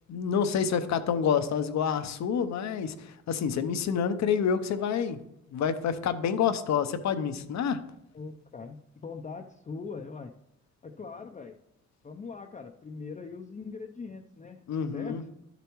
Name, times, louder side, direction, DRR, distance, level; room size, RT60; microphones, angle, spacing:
voice 1, 0.1-5.2 5.5-7.8 14.7-15.2, left 7 dB, 65° left, 10 dB, 0.8 m, -28 dB
voice 2, 8.1-10.3 10.8-11.5 12.0-14.6 14.9-15.2, left 4 dB, 25° left, 3 dB, 0.6 m, -41 dB
11.5 x 6.9 x 3.1 m, 0.81 s
cardioid pair, 90°, 30 cm